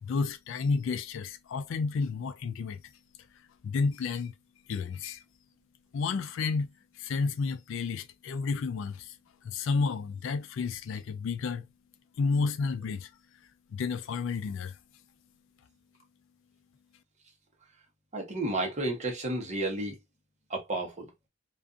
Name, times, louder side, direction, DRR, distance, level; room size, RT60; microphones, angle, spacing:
voice 1, 0.0-2.8 3.6-4.3 4.7-5.2 5.9-6.7 7.0-9.1 9.4-11.7 12.2-13.1 13.7-14.8, left 4 dB, 70° left, 0.3 m, -31 dB
voice 2, 18.1-20.0 20.5-21.1, right 2 dB, 35° right, 0.9 m, -32 dB
2.5 x 2.4 x 2.4 m
head